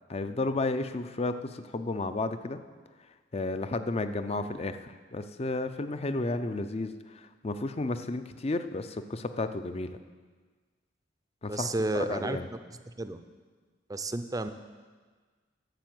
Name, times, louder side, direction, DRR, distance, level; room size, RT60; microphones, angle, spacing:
voice 1, 0.1-2.6 3.3-10.0 11.4-11.7 12.0-12.5, left 2 dB, 35° left, 10 dB, 0.6 m, -32 dB
voice 2, 11.5-12.4 13.0-13.2 13.9-14.5, right 2 dB, 20° right, 9 dB, 0.6 m, -31 dB
11.5 x 7.3 x 7.7 m, 1.5 s
head